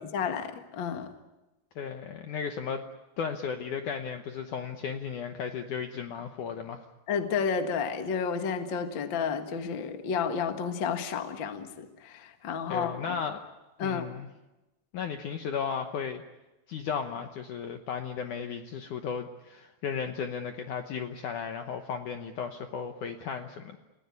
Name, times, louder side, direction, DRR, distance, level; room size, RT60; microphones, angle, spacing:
voice 1, 0.1-1.1 7.1-13.1 13.8-14.1, left 6 dB, 50° left, 7 dB, 1.4 m, -31 dB
voice 2, 1.8-2.8 3.2-6.8 12.7-13.4 13.8-14.3 14.9-16.2 16.7-23.8, left 6 dB, 70° left, 6 dB, 2.0 m, -35 dB
29.5 x 17.5 x 9.6 m, 1.0 s
omnidirectional pair, 4.8 m